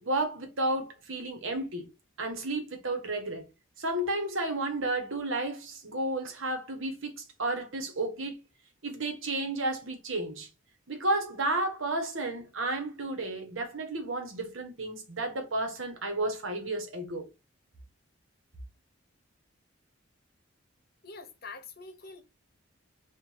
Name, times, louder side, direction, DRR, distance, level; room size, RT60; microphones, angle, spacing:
voice 1, 0.0-1.9 2.2-3.5 3.8-8.4 8.8-10.5 10.9-17.3, right 2 dB, 75° right, 1.3 m, -32 dB
voice 2, 21.0-22.2, left 4 dB, 50° left, 0.8 m, -45 dB
3.7 x 2.6 x 4.6 m
head